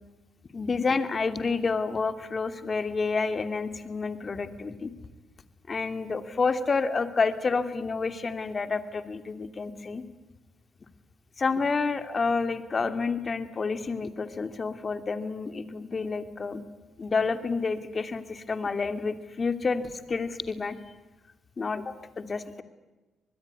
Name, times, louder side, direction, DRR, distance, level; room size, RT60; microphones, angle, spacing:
voice 1, 0.5-4.9 5.7-10.0 11.4-16.6 17.0-20.8 21.6-22.6, left 4 dB, 35° left, 10 dB, 2.7 m, -29 dB
25.5 x 21.0 x 9.7 m, 1.1 s
cardioid pair, 90°, 0 cm